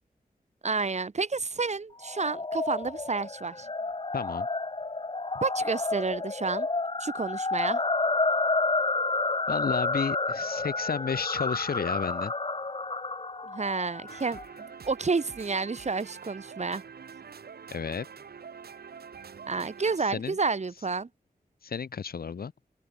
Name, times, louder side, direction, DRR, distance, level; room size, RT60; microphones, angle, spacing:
voice 1, 0.6-3.7 5.4-6.7 7.0-7.8 13.5-16.8 19.5-21.1, right 4 dB, 45° right, 2.2 m, -30 dB
sound 1, 2.0-14.4, left 3 dB, 35° left, 2.9 m, -30 dB
voice 2, 4.1-4.5 9.5-12.3 17.7-18.1 20.0-20.4 21.6-22.5, left 6 dB, 75° left, 1.8 m, -32 dB
sound 2, 14.1-20.0, right 6 dB, 90° right, 3.5 m, -45 dB
open air
wide cardioid pair, 85°, 16 cm